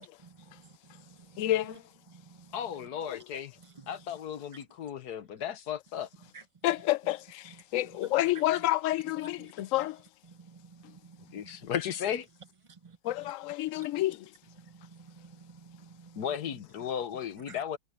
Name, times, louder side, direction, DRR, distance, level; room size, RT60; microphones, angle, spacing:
voice 1, 0.2-0.7 1.1-1.4 2.1-2.6 10.4-11.6 12.7-13.0 13.8-13.9 14.7-16.2 17.5-17.6, right 5 dB, 30° right, 0.6 m, -53 dB
voice 2, 1.4-1.8 3.0-3.2 6.6-10.0 13.0-14.3, left 15 dB, 65° left, 0.9 m, -29 dB
voice 3, 2.5-3.6 3.9-6.1 11.3-12.3 16.2-17.8, left 9 dB, 90° left, 1.6 m, -35 dB
omnidirectional pair, 1.6 m